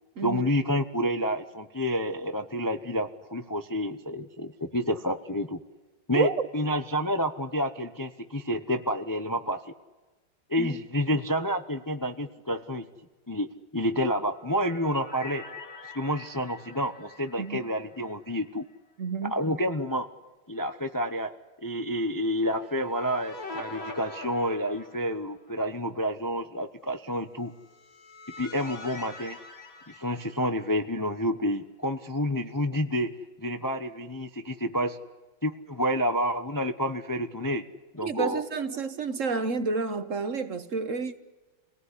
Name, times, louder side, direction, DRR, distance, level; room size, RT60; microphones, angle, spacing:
voice 1, 0.2-5.6 6.1-9.6 10.5-12.9 13.3-13.5 13.7-15.4 15.9-18.6 19.2-20.1 20.5-21.3 21.6-27.5 28.4-29.4 29.9-35.0 35.4-37.7 37.9-38.4, equal, 15° left, 0.7 m, -29 dB
voice 2, 6.1-6.5 10.6-10.8 17.4-17.6 19.0-19.3 38.0-41.2, right 4 dB, 50° right, 1.4 m, -30 dB
sound 1, 14.1-18.4 18.7-18.8 22.4-25.5 27.5-30.9, left 3 dB, 50° left, 3.4 m, -44 dB
27.5 x 18.5 x 9.9 m
omnidirectional pair, 1.9 m